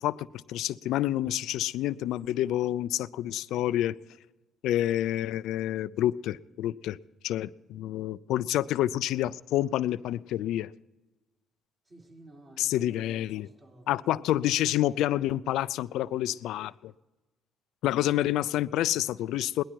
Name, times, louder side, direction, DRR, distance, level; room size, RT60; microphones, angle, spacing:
voice 1, 0.0-3.9 4.6-7.0 7.2-10.7 12.6-13.5 13.9-16.9 17.8-19.6, left 13 dB, 80° left, 19 dB, 0.3 m, -28 dB
voice 2, 11.9-14.8, right 1 dB, 40° right, -1 dB, 3.7 m, -53 dB
18.5 x 11.5 x 4.5 m, 1.1 s
supercardioid pair, 70°, 0 cm